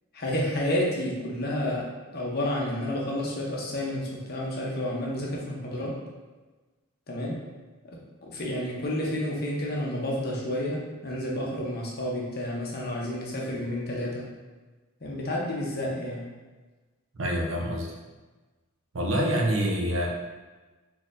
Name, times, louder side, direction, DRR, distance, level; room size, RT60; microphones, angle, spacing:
voice 1, 0.1-1.8 2.1-6.0 7.1-7.4 7.8-14.3 15.0-16.2, left 1 dB, 45° left, -3 dB, 0.7 m, -30 dB
voice 2, 17.2-17.9 18.9-20.1, equal, 65° right, -1 dB, 0.6 m, -26 dB
4.1 x 2.8 x 2.5 m, 1.3 s
head